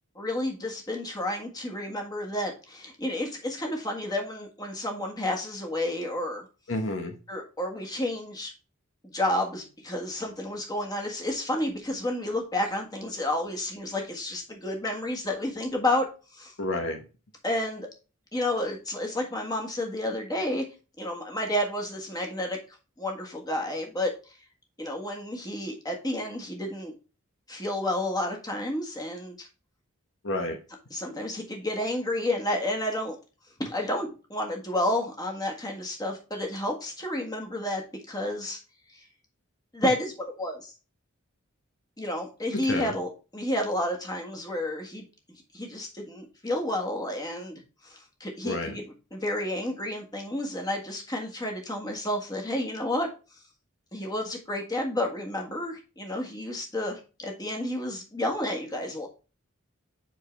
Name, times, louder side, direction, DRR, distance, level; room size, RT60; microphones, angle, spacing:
voice 1, 0.1-6.5 7.3-8.5 9.0-16.1 16.3-16.5 17.4-17.9 18.3-20.6 21.0-22.6 23.0-24.1 24.8-26.9 27.5-29.5 30.9-33.2 33.6-38.6 38.9-39.0 39.7-40.7 42.0-45.0 45.5-48.8 49.1-53.1 53.9-59.1, left 1 dB, 20° left, 1 dB, 1.6 m, -31 dB
voice 2, 6.7-7.2 16.6-17.0 30.2-30.6 42.5-42.9 48.4-48.8, left 1 dB, 65° left, 4 dB, 1.0 m, -30 dB
7.6 x 4.6 x 3.3 m, 0.33 s
head